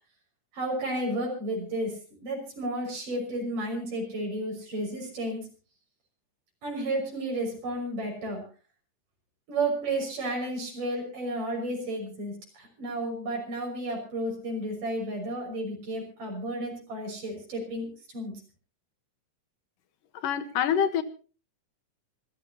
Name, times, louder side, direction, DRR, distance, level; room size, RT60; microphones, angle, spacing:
voice 1, 0.5-5.5 6.6-8.4 9.5-17.9 18.1-18.3, right 1 dB, 75° right, 0 dB, 7.7 m, -32 dB
voice 2, 20.1-21.0, left 8 dB, 80° left, 11 dB, 2.9 m, -26 dB
26.0 x 15.0 x 2.9 m, 0.37 s
omnidirectional pair, 3.8 m